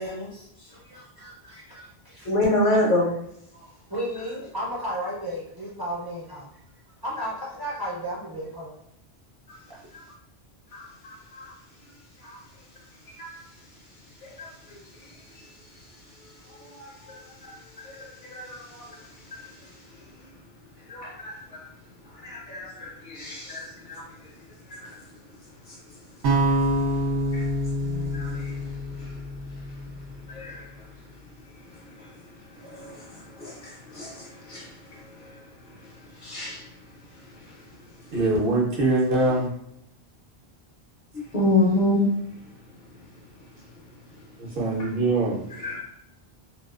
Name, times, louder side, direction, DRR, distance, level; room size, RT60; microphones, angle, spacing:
voice 1, 0.0-2.3 3.9-6.6 7.0-8.7, equal, 30° right, -7 dB, 0.5 m, -34 dB
voice 2, 2.3-3.2 10.7-11.5 12.2-12.4 13.2-13.4 14.2-14.8 16.6-19.0 19.3-19.7 20.9-21.6 22.2-24.1 24.7-24.9 27.3-27.5 27.8-28.6 29.0-29.1 30.3-30.8 32.0-32.1 32.6-35.4 36.2-36.6 41.1-42.0 45.5-45.8, left 1 dB, 60° left, -3 dB, 0.6 m, -29 dB
sound 1, 26.2-30.4, equal, 90° right, 0.9 m, -26 dB
voice 3, 38.1-39.5 44.4-45.4, right 2 dB, 60° right, -3 dB, 0.8 m, -23 dB
2.3 x 2.3 x 2.3 m, 0.73 s
omnidirectional pair, 1.1 m